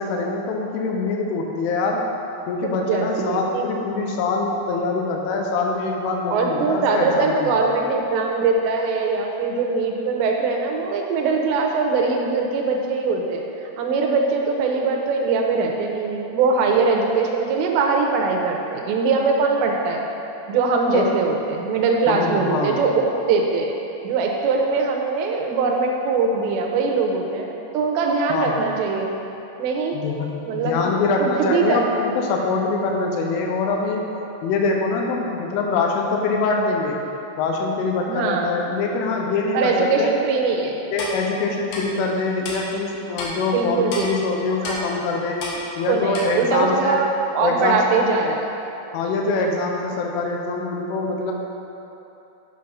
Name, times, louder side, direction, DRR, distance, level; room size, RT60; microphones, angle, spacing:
voice 1, 0.0-2.0 2.5-7.7 20.9-21.1 22.1-22.8 28.3-28.6 29.9-30.3 30.5-34.1 34.4-37.0 37.4-40.1 40.9-45.4 45.8-47.0 47.4-47.8 48.9-51.3, left 3 dB, 85° left, 1 dB, 3.3 m, -24 dB
voice 2, 2.9-3.7 6.3-20.0 20.5-23.7 24.0-29.1 29.6-30.0 30.5-30.8 31.2-31.8 38.1-38.5 39.5-40.7 43.5-44.1 44.6-44.9 45.9-48.4, right 4 dB, 75° right, 1 dB, 2.9 m, -22 dB
Clock, 41.0-41.1 41.7-41.8 42.4-42.6 43.2-43.3 43.9-44.0 44.6-44.8 45.4-45.6 46.1-46.2, left 3 dB, 70° left, 2.5 m, -30 dB
7.9 x 6.5 x 5.5 m, 3.0 s
omnidirectional pair, 5.5 m